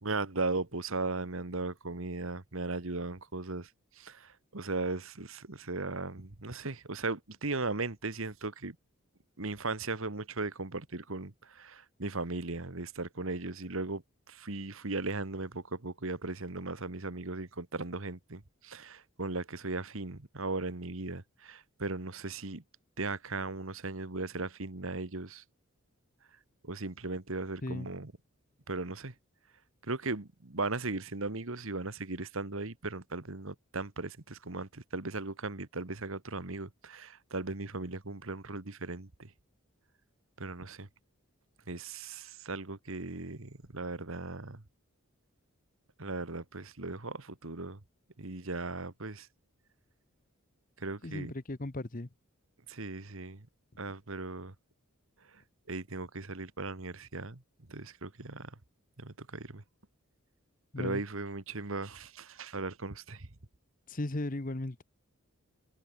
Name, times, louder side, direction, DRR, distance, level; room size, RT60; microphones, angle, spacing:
voice 1, 0.0-3.7 4.0-8.7 9.4-14.0 14.3-22.6 23.0-25.4 26.6-28.1 28.7-29.1 29.9-39.3 40.4-40.9 41.7-44.6 46.0-47.8 48.2-49.3 50.8-51.3 52.7-53.4 53.8-54.5 55.7-57.4 57.7-58.5 59.0-59.6 60.8-63.3, right 3 dB, 65° right, 1.7 m, -37 dB
voice 2, 51.0-52.1 60.7-61.0 63.9-64.8, left 2 dB, 40° left, 1.0 m, -36 dB
head